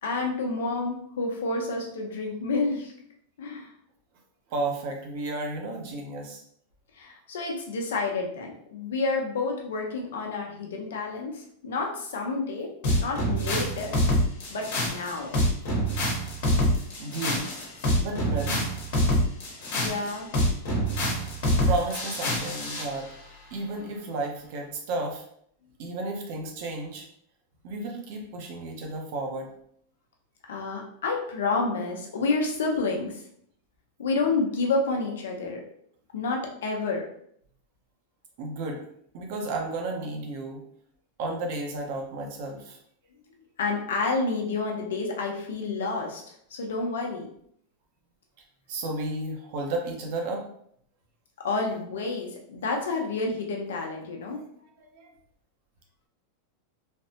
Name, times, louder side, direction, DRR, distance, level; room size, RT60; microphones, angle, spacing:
voice 1, 0.0-2.9 3.4-3.7 6.9-12.7 13.0-13.9 14.5-15.3 19.7-20.3 30.5-33.2 34.0-35.6 36.1-37.1 43.6-46.2 46.5-47.3 51.4-54.4, left 3 dB, 85° left, 1 dB, 0.7 m, -29 dB
voice 2, 4.5-6.4 17.0-17.5 18.0-18.7 21.2-21.3 21.6-23.1 23.5-25.2 25.8-27.1 27.6-29.5 38.4-38.8 39.1-40.6 41.2-42.8 48.7-50.4 54.8-55.1, right 2 dB, 60° right, 1 dB, 0.8 m, -32 dB
sound 1, 12.8-22.9, equal, 65° left, 1.1 m, -26 dB
3.3 x 2.1 x 2.8 m, 0.67 s
supercardioid pair, 135°, 0 cm